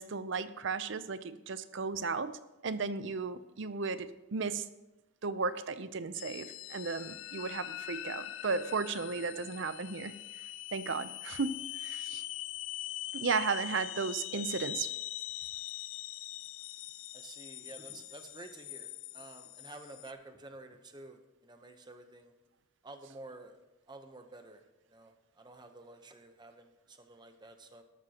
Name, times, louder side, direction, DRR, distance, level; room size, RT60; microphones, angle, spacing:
voice 1, 0.0-4.6 5.2-10.1 10.7-12.2 13.1-14.9, right 4 dB, 55° right, 13 dB, 0.6 m, -35 dB
sound 1, 6.1-20.1, left 15 dB, 65° left, 0.3 m, -43 dB
voice 2, 17.1-22.3 22.8-23.6 23.9-24.6 24.9-27.8, right 2 dB, 20° right, 6 dB, 0.8 m, -51 dB
12.5 x 12.5 x 2.9 m, 1.0 s
head